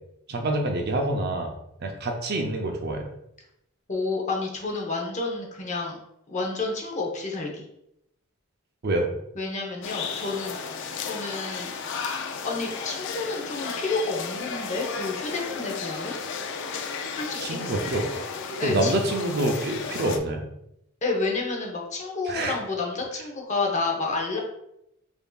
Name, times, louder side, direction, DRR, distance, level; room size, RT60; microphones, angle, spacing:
voice 1, 0.3-1.5 1.8-3.0 8.8-9.1 17.4-18.1 18.6-20.4 22.3-22.5, right 1 dB, 50° right, 3 dB, 0.5 m, -26 dB
voice 2, 3.9-6.0 6.3-7.6 9.3-10.6 11.0-11.7 12.4-16.1 17.1-17.6 18.6-18.9 21.0-24.4, left 3 dB, 35° left, 0 dB, 0.8 m, -30 dB
sound 1, 9.8-20.2, left 5 dB, 60° left, 0.4 m, -34 dB
5.2 x 2.6 x 2.3 m, 0.80 s
head